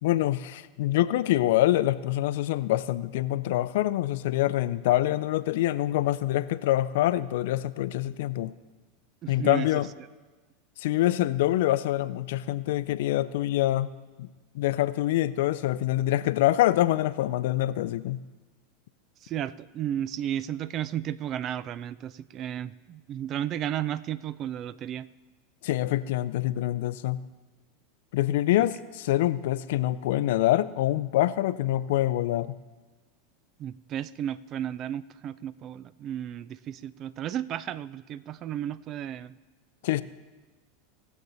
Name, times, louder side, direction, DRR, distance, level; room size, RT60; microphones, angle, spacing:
voice 1, 0.0-8.5 9.3-9.9 10.8-13.9 14.2-14.3 14.5-18.2 25.6-27.2 28.1-32.6 39.8-40.0, left 14 dB, 70° left, 16 dB, 0.5 m, -25 dB
voice 2, 9.2-9.8 19.2-25.1 33.6-39.4, right 10 dB, 40° right, 18 dB, 0.4 m, -33 dB
18.5 x 7.1 x 4.0 m, 1.2 s
hypercardioid pair, 100°, 0 cm